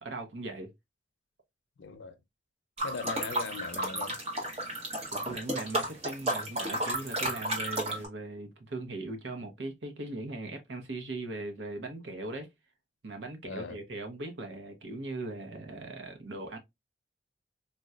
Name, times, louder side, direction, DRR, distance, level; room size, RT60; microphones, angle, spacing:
voice 1, 0.0-0.7 5.1-12.5 13.0-16.6, right 2 dB, 75° right, 0.8 m, -39 dB
voice 2, 1.8-2.2 2.8-4.2 13.4-13.8, left 4 dB, 85° left, 0.5 m, -39 dB
sound 1, 2.8-8.1, right 1 dB, 35° right, 0.8 m, -33 dB
4.1 x 2.2 x 2.3 m
head